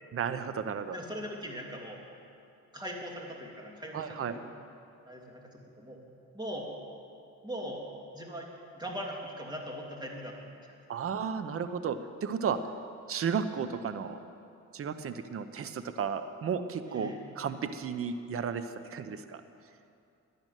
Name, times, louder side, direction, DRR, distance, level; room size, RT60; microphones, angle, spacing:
voice 1, 0.1-1.0 3.9-4.3 10.9-12.6 13.1-14.2 14.7-18.6 18.9-19.4, right 6 dB, 45° right, 11 dB, 0.9 m, -33 dB
voice 2, 0.9-2.0 2.7-4.5 5.1-5.5 5.8-6.0 6.3-6.7 7.4-7.8 8.1-8.5 8.7-10.3 16.8-17.2, equal, 15° right, 0 dB, 2.9 m, -40 dB
12.0 x 10.5 x 9.2 m, 2.6 s
cardioid pair, 90°, 30 cm